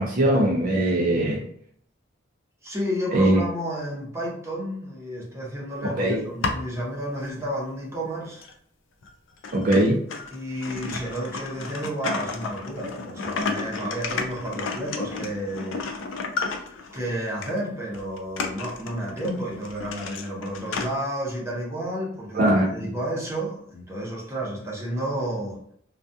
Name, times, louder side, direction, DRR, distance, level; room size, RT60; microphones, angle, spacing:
voice 1, 0.0-1.4 3.1-3.4 5.8-6.2 9.5-10.0 22.3-22.9, right 1 dB, 45° right, -1 dB, 0.4 m, -21 dB
voice 2, 2.6-8.5 10.3-15.8 16.9-25.6, right 1 dB, 15° right, -4 dB, 0.7 m, -31 dB
sound 1, 6.1-6.8 7.4-7.5 8.4-8.5 9.0-9.1 9.4-17.0 17.4-17.6 17.9-20.9, left 4 dB, 70° left, 0.4 m, -32 dB
2.3 x 2.2 x 2.6 m, 0.63 s
head